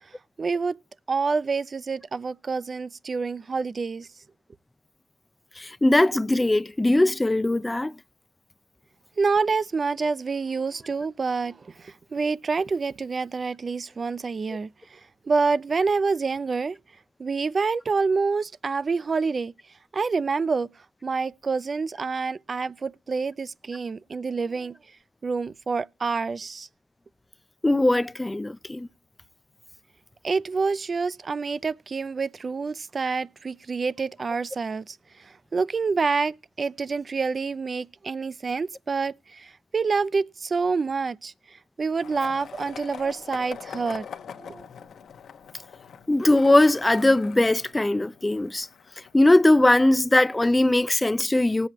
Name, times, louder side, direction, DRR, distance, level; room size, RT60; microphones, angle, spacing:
voice 1, 0.4-0.8 1.1-4.1 9.2-15.0 15.2-16.8 17.2-19.5 19.9-20.7 21.0-24.7 25.2-26.7 30.2-44.1 44.4-44.7, right 4 dB, 35° right, 0.6 m, -27 dB
voice 2, 5.6-7.9 27.6-28.9 46.1-48.7 49.1-51.7, left 1 dB, 15° left, 0.5 m, -20 dB
Skateboard, 42.0-49.9, left 7 dB, 60° left, 1.1 m, -43 dB
19.5 x 7.8 x 3.0 m
cardioid pair, 90°, 0 cm